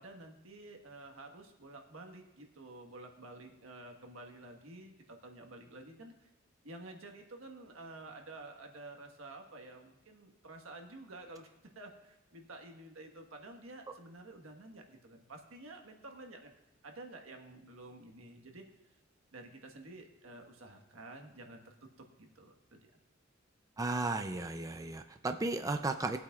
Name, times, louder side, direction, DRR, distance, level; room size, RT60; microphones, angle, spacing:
voice 1, 0.0-6.3 6.6-16.5 16.8-18.6 19.3-22.9, right 2 dB, 85° right, 3 dB, 1.4 m, -51 dB
voice 2, 23.8-26.2, right 2 dB, 15° right, 7 dB, 0.4 m, -34 dB
20.0 x 8.4 x 2.4 m, 0.98 s
head